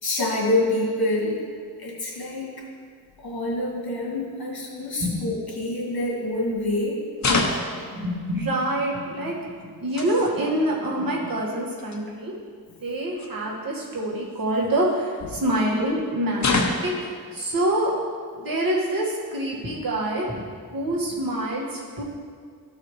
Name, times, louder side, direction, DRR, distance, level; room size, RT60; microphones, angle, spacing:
voice 1, 0.0-1.4 1.8-2.5 3.2-7.0, left 2 dB, 75° left, -4 dB, 2.1 m, -26 dB
sound 1, 5.5-5.7 7.2-7.8 9.6-10.4 11.5-11.6 11.8-12.0 13.2-13.3 14.3-15.3 16.4-17.0, left 3 dB, 45° left, 0.9 m, -26 dB
voice 2, 7.8-12.3 12.8-16.5 16.8-17.9 18.3-22.0, right 1 dB, 65° right, -4 dB, 1.8 m, -26 dB
14.0 x 4.8 x 3.2 m, 2.1 s
wide cardioid pair, 110°, 38 cm